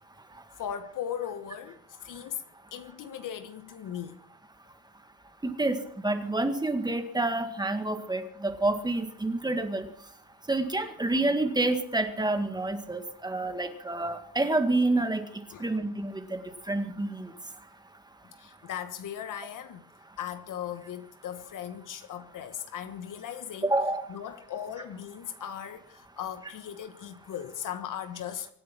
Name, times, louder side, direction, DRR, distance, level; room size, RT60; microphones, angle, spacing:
voice 1, 0.6-2.4 2.7-4.2 15.5-15.7 18.4-19.8 20.2-28.5, left 9 dB, 65° left, 1.4 m, -38 dB
voice 2, 5.4-5.8 6.0-9.9 10.5-15.3 15.6-16.4 16.7-17.3 23.6-24.0, right 2 dB, 10° right, 1.8 m, -28 dB
24.5 x 9.5 x 6.0 m
cardioid pair, 125°, 35 cm